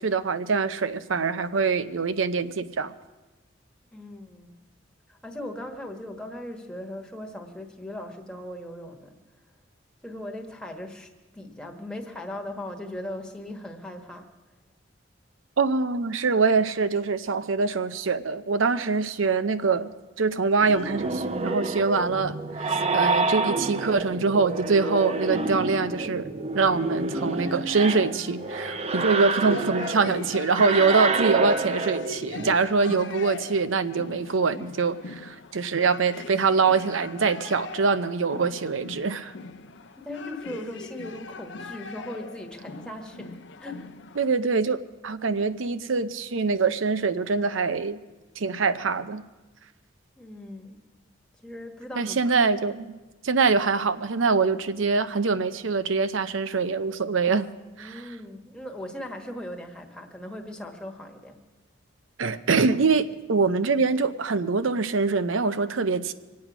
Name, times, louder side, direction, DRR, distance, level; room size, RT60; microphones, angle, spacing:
voice 1, 0.0-2.9 15.6-19.9 20.2-26.3 26.5-39.3 44.2-48.0 48.4-49.2 52.0-52.9 53.2-57.5 57.8-58.0 62.2-66.1, right 4 dB, 85° right, 12 dB, 0.7 m, -24 dB
voice 2, 3.9-4.6 5.1-9.1 10.0-14.3 40.0-43.9 50.2-50.8 51.4-52.3 57.8-61.4, left 1 dB, 5° left, 1 dB, 1.3 m, -38 dB
sound 1, 20.6-32.6, right 3 dB, 30° right, 0.6 m, -28 dB
sound 2, 27.5-44.4, left 4 dB, 65° left, 0.6 m, -41 dB
24.0 x 8.6 x 6.0 m, 1.2 s
head